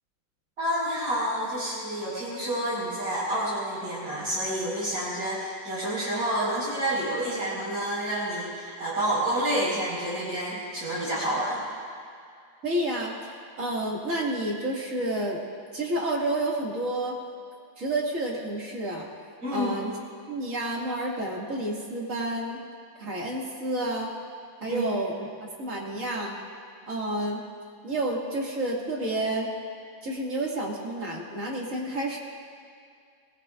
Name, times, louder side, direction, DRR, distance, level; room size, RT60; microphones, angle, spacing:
voice 1, 0.6-11.6 19.4-19.7 24.7-24.8, right 1 dB, 75° right, -9 dB, 5.7 m, -29 dB
voice 2, 12.6-13.1 13.6-15.4 15.7-17.2 17.8-19.1 19.5-20.0 20.3-22.6 23.0-24.1 24.6-26.4 26.9-27.4 27.8-29.5 30.0-32.2, right 1 dB, 40° right, -3 dB, 2.6 m, -30 dB
25.5 x 19.5 x 2.5 m, 2.3 s
omnidirectional pair, 2.1 m